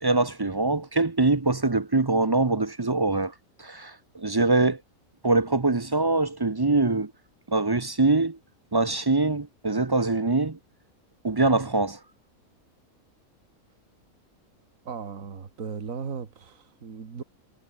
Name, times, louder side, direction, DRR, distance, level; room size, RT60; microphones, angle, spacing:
voice 1, 0.0-3.3 3.6-4.8 5.2-7.1 7.5-8.4 8.7-10.6 11.2-12.0, right 3 dB, 25° right, 0.6 m, -23 dB
voice 2, 14.8-17.2, right 6 dB, 65° right, 2.3 m, -37 dB
omnidirectional pair, 1.5 m